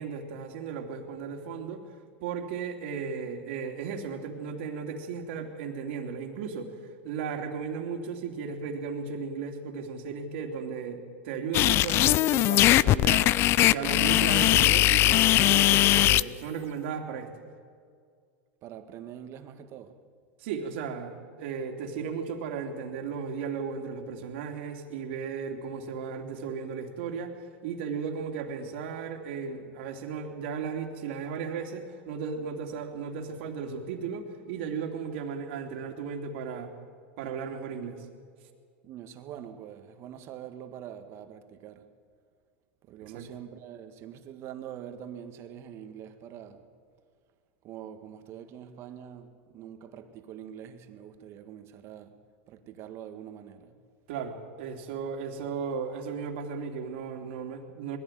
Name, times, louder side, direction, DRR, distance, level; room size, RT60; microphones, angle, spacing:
voice 1, 0.0-1.8 2.2-6.7 7.0-13.3 13.6-17.3 20.4-27.3 27.6-36.7 37.2-38.1 43.0-43.3 54.1-58.0, right 6 dB, 70° right, 3.0 m, -35 dB
circuit-bent-stylophone, 11.5-16.2, left 15 dB, 40° left, 0.4 m, -20 dB
voice 2, 18.6-19.9 38.8-41.8 42.9-46.6 47.6-49.3 49.5-52.1 52.5-53.7, right 10 dB, 45° right, 1.8 m, -44 dB
21.0 x 15.5 x 9.2 m
supercardioid pair, 130°, 6 cm